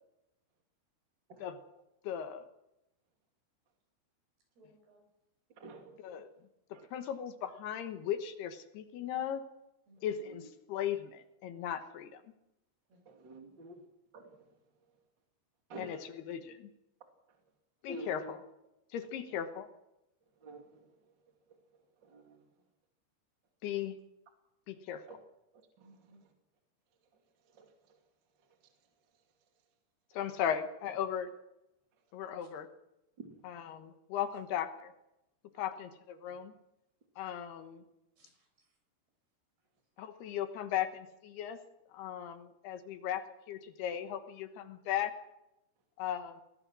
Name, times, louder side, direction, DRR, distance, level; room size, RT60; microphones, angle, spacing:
voice 1, 2.0-2.4 6.0-6.3 6.9-9.4 10.0-12.2 15.8-16.7 17.8-18.4 18.9-19.7 23.6-24.0 24.7-25.0 30.1-31.3 32.1-32.7 33.4-34.9 35.6-36.5 37.2-37.8 40.0-41.6 41.9-43.2 43.5-45.1 46.0-46.4, left 9 dB, 75° left, 9 dB, 3.1 m, -37 dB
voice 2, 4.6-5.1 9.9-10.3 12.9-13.0 13.3-13.5 25.8-26.2 36.3-36.4 38.2-38.7, right 1 dB, 65° right, 3 dB, 8.0 m, -64 dB
voice 3, 5.6-6.0 6.7-6.9 13.1-13.8 14.1-14.4 15.7-16.0 17.9-18.3 20.4-20.8 22.1-22.4 25.1-25.2 27.6-27.7 33.2-33.3, right 1 dB, 30° right, 4 dB, 2.5 m, -47 dB
22.5 x 19.0 x 6.2 m, 0.90 s
omnidirectional pair, 4.9 m